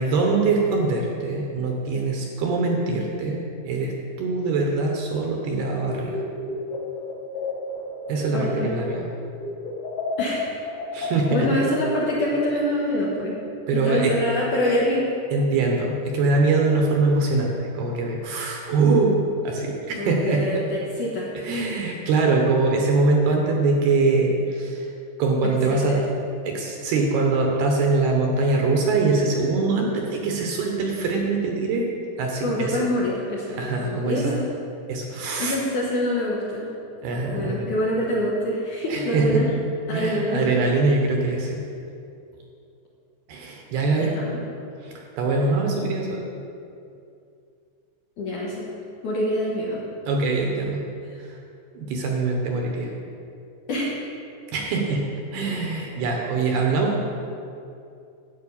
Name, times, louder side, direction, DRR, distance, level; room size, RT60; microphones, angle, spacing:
voice 1, 0.0-6.2 8.1-9.1 10.9-11.5 13.7-14.2 15.3-19.2 19.4-20.5 21.4-24.9 25.2-26.0 26.4-31.9 32.2-32.8 33.5-34.4 34.9-35.6 37.0-37.7 38.9-39.4 39.9-41.6 43.3-44.2 44.8-46.2 50.1-50.8 51.7-52.9 54.5-55.0 55.3-57.0, right 3 dB, 70° right, 0 dB, 2.8 m, -23 dB
sound 1, 5.8-9.1 9.4-12.4, left 2 dB, 90° left, 3.8 m, -31 dB
voice 2, 8.3-8.7 10.2-10.5 11.3-13.4 13.7-15.1 20.0-21.3 25.4-26.0 32.4-34.5 35.4-36.7 37.3-39.5 39.9-40.5 44.0-44.4 48.2-48.7 49.0-49.8 53.7-53.9, left 1 dB, 60° left, -6 dB, 2.3 m, -25 dB
12.0 x 5.6 x 8.6 m, 2.6 s
omnidirectional pair, 5.3 m